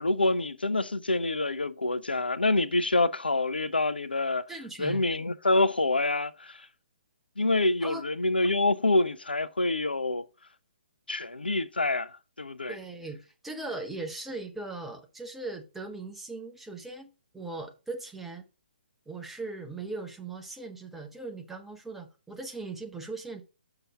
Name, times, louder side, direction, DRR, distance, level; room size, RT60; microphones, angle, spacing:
voice 1, 0.0-4.4 4.8-6.7 7.4-10.2 11.1-12.8, left 2 dB, 75° left, 0.5 m, -26 dB
voice 2, 4.5-5.0 7.8-8.0 12.7-18.5 19.1-23.4, right 3 dB, 5° right, 0.8 m, -39 dB
6.7 x 5.8 x 3.6 m
figure-of-eight pair, 130°, 5 cm